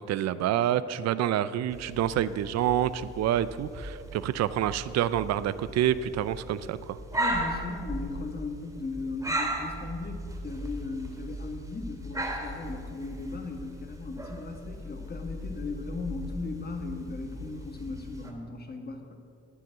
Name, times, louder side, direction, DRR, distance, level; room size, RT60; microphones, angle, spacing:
voice 1, 0.0-7.0, right 11 dB, 60° right, 15 dB, 0.5 m, -27 dB
sound 1, 1.7-18.3, right 1 dB, 10° right, 2.8 m, -37 dB
voice 2, 7.1-19.1, left 3 dB, 30° left, 4 dB, 1.6 m, -37 dB
9.4 x 9.4 x 7.9 m, 2.4 s
cardioid pair, 90°, 30 cm